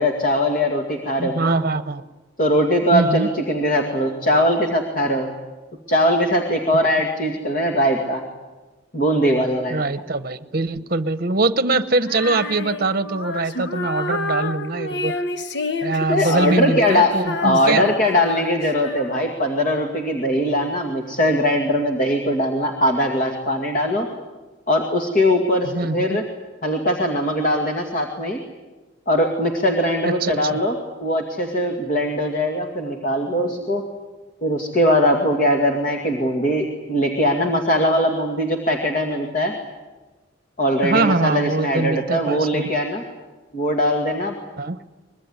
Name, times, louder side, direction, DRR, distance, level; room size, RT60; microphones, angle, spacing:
voice 1, 0.0-1.5 2.4-5.3 5.9-8.2 8.9-9.8 16.1-17.1 17.4-24.1 24.7-26.2 26.6-28.4 29.1-30.8 31.0-33.8 34.4-39.5 40.6-43.0 43.5-44.3, equal, 40° left, 2 dB, 2.3 m, -20 dB
voice 2, 1.2-2.0 2.9-3.3 6.7-6.9 9.7-15.1 15.8-17.8 25.6-26.2 30.0-30.6 40.8-42.8 44.6-44.8, right 3 dB, 45° right, 12 dB, 1.0 m, -23 dB
Female singing, 12.1-19.4, left 2 dB, 55° left, 1.2 m, -29 dB
24.5 x 21.5 x 9.8 m, 1.2 s
head